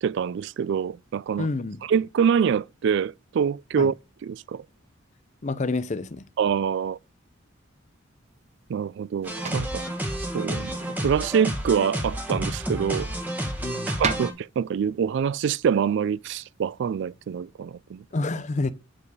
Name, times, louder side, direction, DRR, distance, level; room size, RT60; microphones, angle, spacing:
voice 1, 0.0-1.5 1.8-3.9 4.2-4.6 6.4-7.0 8.7-9.8 10.3-10.8 11.0-13.1 13.9-18.0, right 7 dB, 60° right, 0.3 m, -25 dB
voice 2, 1.4-1.8 3.8-3.9 5.4-6.2 13.6-13.9 18.1-18.7, left 3 dB, 35° left, 0.6 m, -28 dB
sound 1, 8.2-17.4, right 4 dB, 35° right, 0.9 m, -40 dB
sound 2, 9.2-14.3, equal, 10° right, 1.5 m, -30 dB
8.7 x 4.6 x 4.8 m
head